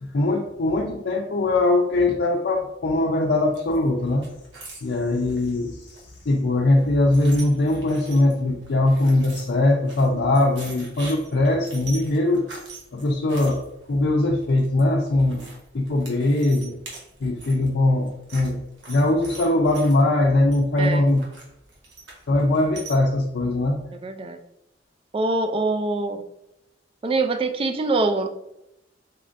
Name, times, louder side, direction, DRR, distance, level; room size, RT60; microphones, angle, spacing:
voice 1, 0.0-4.2 4.8-6.0 6.3-12.5 12.9-13.6 13.9-15.4 15.7-16.8 17.2-18.6 18.9-21.2 22.3-23.8, left 2 dB, 60° left, -2 dB, 0.5 m, -21 dB
sound 1, 3.5-22.9, right 2 dB, 75° right, 1.2 m, -44 dB
voice 2, 24.0-24.4 25.1-26.2 27.0-28.3, right 3 dB, 30° right, 7 dB, 0.3 m, -24 dB
4.1 x 3.7 x 2.5 m, 0.85 s
head